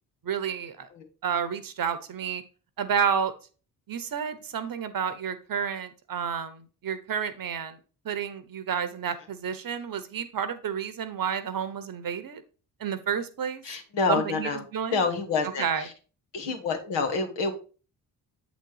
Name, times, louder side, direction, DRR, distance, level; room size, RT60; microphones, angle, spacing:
voice 1, 0.2-0.9 1.2-2.4 2.8-3.3 3.9-7.8 8.0-12.4 12.8-13.6 14.1-15.0 15.6-15.8, right 7 dB, 50° right, 12 dB, 1.0 m, -30 dB
voice 2, 13.6-14.6 14.9-15.9 16.3-17.6, left 4 dB, 70° left, 4 dB, 1.6 m, -28 dB
8.0 x 4.1 x 4.7 m, 0.36 s
hypercardioid pair, 40°, 45 cm